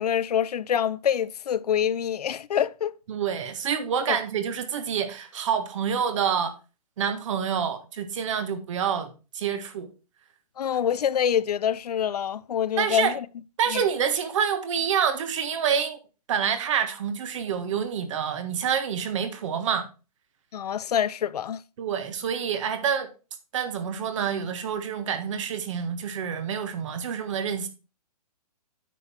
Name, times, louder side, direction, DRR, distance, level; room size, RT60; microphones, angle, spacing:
voice 1, 0.0-2.9 4.1-4.2 10.6-13.3 13.7-13.8 20.5-21.6, left 9 dB, 75° left, 0.6 m, -26 dB
voice 2, 3.1-6.5 7.0-9.9 12.8-13.1 13.6-16.0 16.3-19.9 21.8-23.1 23.5-27.7, right 7 dB, 50° right, 1.5 m, -27 dB
9.2 x 5.5 x 4.3 m
hypercardioid pair, 150°, 20 cm